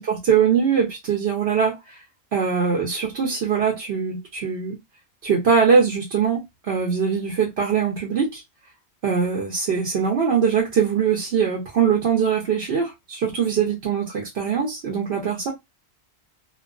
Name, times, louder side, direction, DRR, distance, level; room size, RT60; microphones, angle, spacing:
voice 1, 0.0-2.0 2.3-4.8 5.2-8.4 9.0-15.5, right 6 dB, 65° right, 0.9 m, -22 dB
2.3 x 2.3 x 2.4 m
omnidirectional pair, 1.1 m